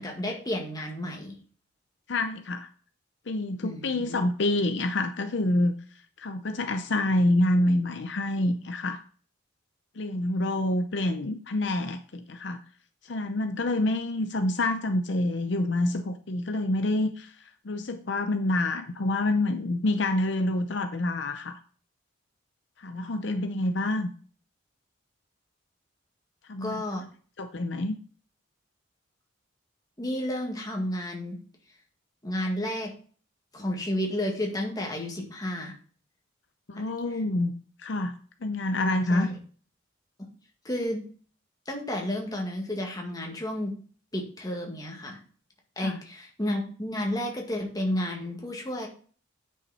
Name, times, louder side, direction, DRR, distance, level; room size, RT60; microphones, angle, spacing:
voice 1, 0.0-1.4 3.6-4.2 26.6-27.1 30.0-31.4 32.2-32.9 33.5-35.7 36.8-36.9 39.1-39.4 40.2-40.3 40.6-41.1 41.7-43.7 44.1-45.2 45.8-48.9, left 1 dB, 20° left, 0 dB, 1.9 m, -31 dB
voice 2, 2.1-2.7 3.3-5.7 6.2-9.0 10.0-12.6 13.0-17.3 17.6-21.6 22.8-24.1 26.5-26.8 27.4-28.0 36.7-37.5 37.8-38.2 38.4-39.3 45.8-46.0, left 1 dB, 60° left, 8 dB, 0.6 m, -27 dB
9.3 x 5.7 x 4.2 m, 0.43 s
head